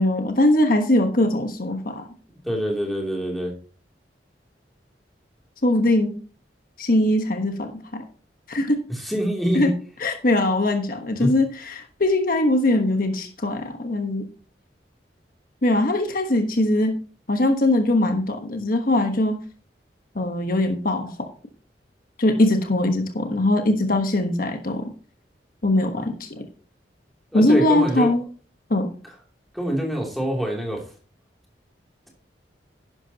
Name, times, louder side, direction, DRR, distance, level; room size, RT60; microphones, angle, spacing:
voice 1, 0.0-2.0 5.6-6.1 6.8-8.0 8.5-8.8 9.5-9.7 10.0-14.2 15.6-17.0 17.3-19.4 20.1-21.3 22.2-24.8 25.6-26.4 27.3-28.2 28.7-28.9, left 1 dB, 50° left, 5 dB, 1.2 m, -21 dB
voice 2, 2.4-3.5 8.9-9.7 11.2-11.3 27.3-28.1 29.5-30.8, equal, ahead, -1 dB, 2.9 m, -25 dB
11.5 x 10.5 x 2.9 m, 0.39 s
head